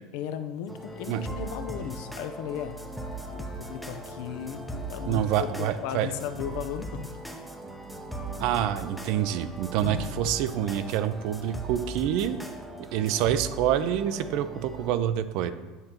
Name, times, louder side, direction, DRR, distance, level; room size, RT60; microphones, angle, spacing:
voice 1, 0.1-2.7 3.2-7.1 9.8-10.1, left 9 dB, 70° left, 9 dB, 0.5 m, -36 dB
sound 1, 0.7-15.0, right 2 dB, ahead, 0.6 m, -39 dB
voice 2, 5.1-6.1 8.4-12.4 12.9-15.5, right 10 dB, 60° right, 12 dB, 0.4 m, -27 dB
8.1 x 5.1 x 2.9 m, 1.3 s
supercardioid pair, 145°, 0 cm